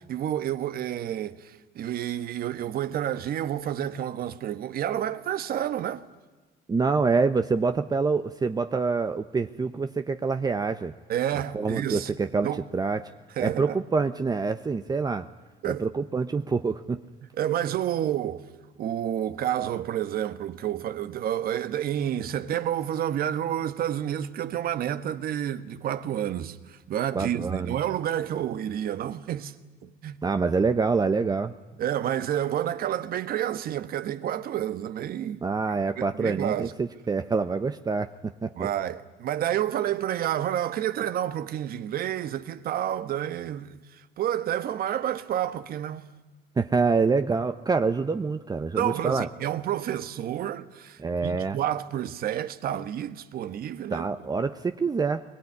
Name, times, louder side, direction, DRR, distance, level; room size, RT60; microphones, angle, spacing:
voice 1, 0.1-6.1 11.1-12.1 12.4-12.6 13.4-13.7 15.6-15.8 17.4-18.5 18.8-29.5 29.8-30.2 31.8-36.7 38.6-46.1 48.7-54.1, right 11 dB, 60° right, 1.4 m, -29 dB
voice 2, 6.7-10.9 11.5-13.1 13.4-15.3 15.7-17.0 27.1-27.7 30.2-31.5 35.4-38.7 46.6-49.3 51.0-51.6 53.9-55.2, right 4 dB, 25° right, 0.8 m, -26 dB
21.5 x 21.5 x 9.7 m
cardioid pair, 110°, 17 cm